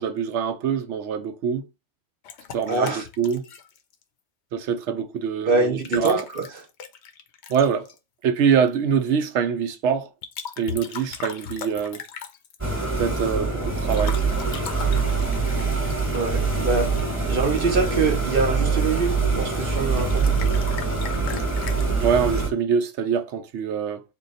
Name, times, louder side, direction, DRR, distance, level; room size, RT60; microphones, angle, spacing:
voice 1, 0.0-1.6 2.5-3.4 4.5-6.2 7.5-7.9 8.2-10.1 10.6-12.0 13.0-14.2 22.0-24.0, right 7 dB, 85° right, 0.9 m, -24 dB
sound 1, 2.2-4.0 5.7-8.0 10.2-12.6 13.8-18.3 19.8-21.8, left 7 dB, 75° left, 0.9 m, -38 dB
voice 2, 2.7-3.1 5.5-6.5 16.1-16.9 17.2-20.4, right 3 dB, 55° right, 1.0 m, -24 dB
sound 2, 12.6-22.5, right 4 dB, 10° right, 1.2 m, -24 dB
4.2 x 2.3 x 4.0 m
omnidirectional pair, 1.2 m